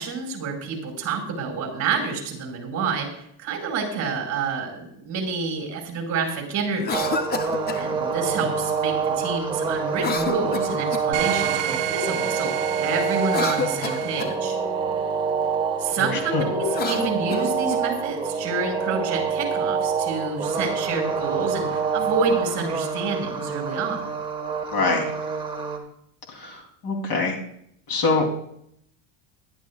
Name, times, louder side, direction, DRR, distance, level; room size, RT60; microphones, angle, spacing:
voice 1, 0.0-3.1 3.4-7.2 7.7-12.5 12.8-14.6 15.8-24.1, right 4 dB, 40° right, 1 dB, 5.3 m, -28 dB
Cough, 6.7-7.9 9.9-11.2 13.1-14.4 16.6-17.8, left 5 dB, 20° left, 0.6 m, -30 dB
sound 1, 6.9-25.8, right 5 dB, 10° right, 1.6 m, -27 dB
sound 2, 11.1-14.2, right 13 dB, 65° right, 1.8 m, -30 dB
voice 2, 16.0-16.5 24.7-25.1 26.3-27.4 27.9-28.3, left 3 dB, 45° left, 1 dB, 3.3 m, -24 dB
21.0 x 12.0 x 2.4 m, 0.69 s
cardioid pair, 145°, 46 cm